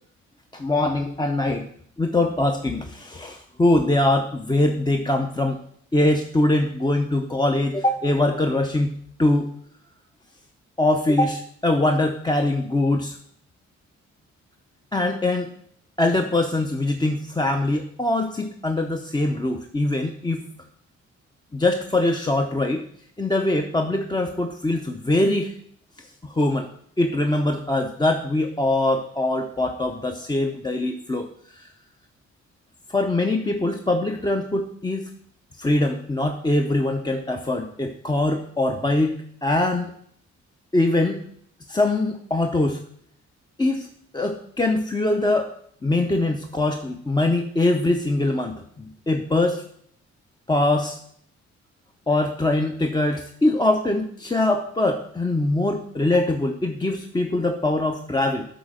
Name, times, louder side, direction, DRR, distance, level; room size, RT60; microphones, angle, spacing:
voice 1, 0.5-1.6 2.0-5.6 5.9-8.9 9.2-9.5 10.8-13.2 14.9-15.5 16.0-20.4 21.5-22.8 23.2-25.5 26.2-26.7 27.0-31.3 31.6-31.7 32.9-35.1 35.6-39.2 39.4-39.9 40.7-41.2 41.7-42.8 43.6-43.9 44.1-45.5 45.8-49.6 50.5-51.0 52.1-58.5, left 2 dB, 15° left, 4 dB, 0.6 m, -22 dB
7.7 x 4.1 x 6.4 m, 0.65 s
cardioid pair, 80°, 29 cm